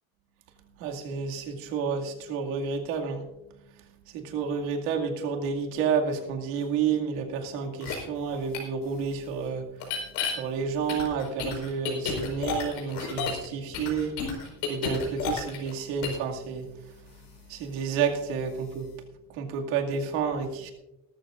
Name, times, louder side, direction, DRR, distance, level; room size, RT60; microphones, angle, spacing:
voice 1, 0.8-3.3 3.7-18.9 19.3-20.7, right 6 dB, 80° right, 2 dB, 2.3 m, -30 dB
sound 1, 7.8-7.9 8.5-8.6 9.8-10.3 10.9-13.5 13.7-15.7 16.0-16.2, left 7 dB, 80° left, 4.8 m, -31 dB
19.5 x 13.5 x 2.5 m, 0.95 s
cardioid pair, 155°, 32 cm